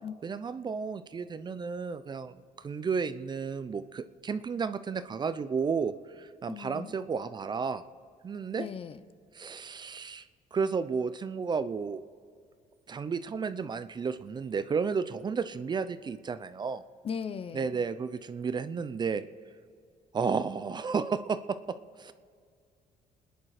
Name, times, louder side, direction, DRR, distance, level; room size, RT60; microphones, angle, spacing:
voice 1, 0.2-7.8 8.2-8.7 9.3-10.2 10.5-12.0 12.9-16.8 17.5-19.2 20.1-21.6 22.0-22.1, right 5 dB, 30° right, 12 dB, 0.6 m, -32 dB
voice 2, 6.5-6.9 8.6-9.0 17.0-17.7, left 6 dB, 35° left, 13 dB, 0.7 m, -37 dB
27.5 x 10.5 x 4.9 m, 2.2 s
cardioid pair, 130°, 16 cm